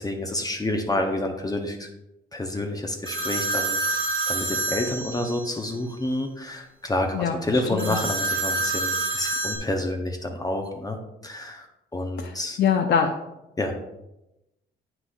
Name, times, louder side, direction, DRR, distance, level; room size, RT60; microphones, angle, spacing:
voice 1, 0.0-1.9 2.3-4.0 4.3-11.0 11.2-11.7 11.9-12.6 13.6-13.7, left 1 dB, 20° left, 3 dB, 0.7 m, -29 dB
sound 1, 3.0-5.6 7.8-9.6, right 2 dB, 90° right, 1.6 m, -27 dB
voice 2, 7.1-8.0 12.2-13.1, left 7 dB, 60° left, 3 dB, 0.6 m, -24 dB
8.0 x 5.9 x 2.5 m, 0.93 s
cardioid pair, 90°, 20 cm